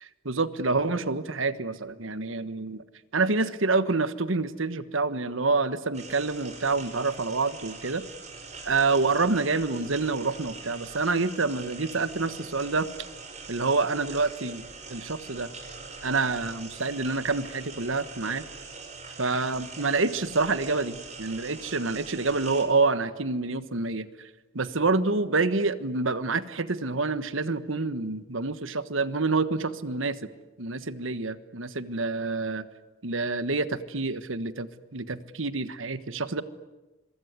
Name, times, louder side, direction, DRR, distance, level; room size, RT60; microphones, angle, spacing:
voice 1, 0.2-2.8 3.1-8.0 8.6-12.9 13.5-14.6 14.9-15.5 16.0-18.4 19.2-24.1 24.5-30.3 30.6-32.6 33.0-36.4, right 3 dB, 85° right, 13 dB, 1.4 m, -27 dB
sound 1, 5.9-22.6, right 4 dB, 35° right, 4.9 m, -43 dB
26.0 x 23.5 x 9.7 m, 1.1 s
head